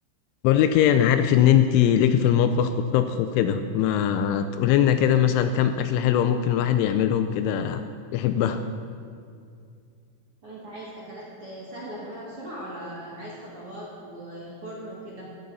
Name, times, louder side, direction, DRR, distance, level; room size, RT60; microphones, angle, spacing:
voice 1, 0.4-7.8 8.1-8.6, left 9 dB, 85° left, 9 dB, 2.8 m, -21 dB
voice 2, 10.4-15.3, right 1 dB, 60° right, -6 dB, 1.4 m, -39 dB
16.0 x 14.0 x 4.1 m, 2.3 s
omnidirectional pair, 6.0 m